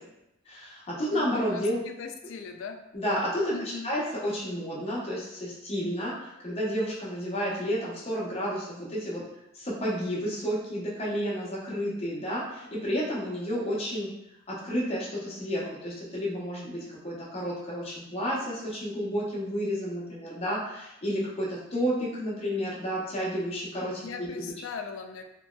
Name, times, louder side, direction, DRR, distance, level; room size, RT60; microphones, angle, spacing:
voice 1, 0.5-1.8 2.9-3.5 3.8-9.2 9.5-14.1 14.5-24.5, equal, 30° left, -5 dB, 0.8 m, -31 dB
voice 2, 1.1-2.8 3.5-3.9 24.0-25.2, left 5 dB, 75° left, 6 dB, 0.3 m, -39 dB
2.9 x 2.7 x 2.3 m, 0.88 s
head